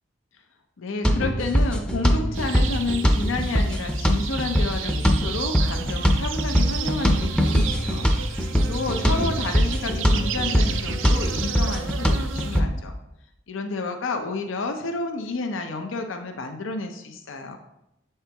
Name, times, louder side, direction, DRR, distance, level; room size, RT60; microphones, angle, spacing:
voice 1, 0.8-13.0 13.5-17.6, left 3 dB, 90° left, 5 dB, 0.6 m, -30 dB
sound 1, 1.0-12.7, equal, 5° left, 0.5 m, -22 dB
sound 2, 2.3-12.6, right 8 dB, 85° right, 0.5 m, -34 dB
7.5 x 4.4 x 3.4 m, 0.85 s
head